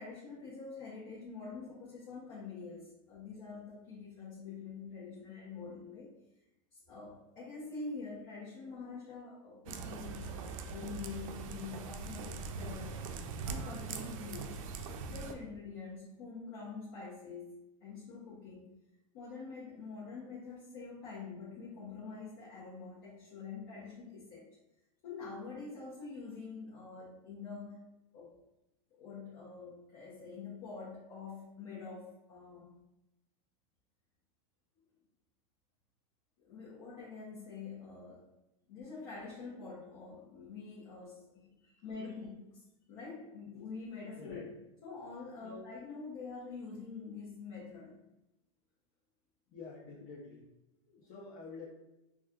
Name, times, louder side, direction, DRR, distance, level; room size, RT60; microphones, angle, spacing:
voice 1, 0.0-6.1 6.7-13.0 13.5-14.6 15.1-18.7 19.1-24.5 25.0-27.9 28.1-28.3 28.9-32.7 36.4-38.3 38.7-41.6 41.8-44.4 44.8-48.0, left 4 dB, 60° left, -6 dB, 1.0 m, -46 dB
sound 1, 9.7-15.3, right 4 dB, 75° right, 0.4 m, -41 dB
voice 2, 44.2-44.5 45.4-45.6 49.5-50.5 50.9-51.7, left 4 dB, 40° left, -4 dB, 0.7 m, -48 dB
4.2 x 2.4 x 2.4 m, 0.93 s
supercardioid pair, 120°, 17 cm